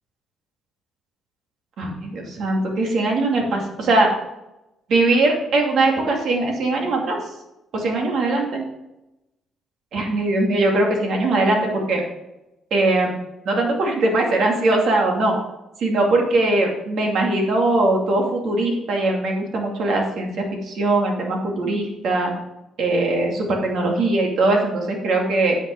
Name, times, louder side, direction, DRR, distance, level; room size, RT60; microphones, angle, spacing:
voice 1, 1.8-4.1 4.9-7.2 7.7-8.6 9.9-12.0 12.7-13.1 13.4-15.3 15.8-20.3 20.6-22.3 22.8-25.6, right 2 dB, 70° right, 1 dB, 2.5 m, -20 dB
9.8 x 6.0 x 5.4 m, 0.93 s
cardioid pair, 90°, 0 cm